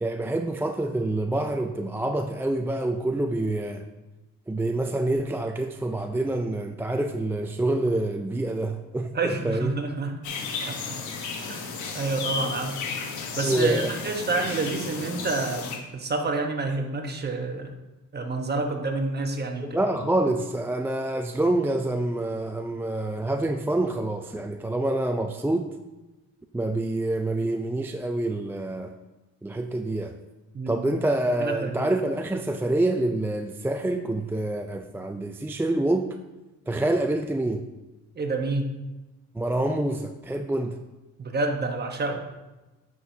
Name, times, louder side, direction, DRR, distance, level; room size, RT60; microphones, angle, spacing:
voice 1, 0.0-3.9 4.5-9.7 13.4-13.9 19.6-25.7 26.5-28.9 29.4-30.2 30.7-36.2 36.7-37.7 39.3-40.8, right 2 dB, 10° right, 5 dB, 0.4 m, -27 dB
voice 2, 9.1-10.2 10.6-11.0 11.4-11.7 11.9-12.8 13.3-17.8 18.1-19.8 30.5-30.8 31.4-31.9 38.1-38.7 41.2-42.2, right 3 dB, 35° right, 3 dB, 1.2 m, -28 dB
sound 1, 10.2-15.8, left 5 dB, 75° left, 1.2 m, -33 dB
9.5 x 6.0 x 2.8 m, 1.1 s
cardioid pair, 90°, 30 cm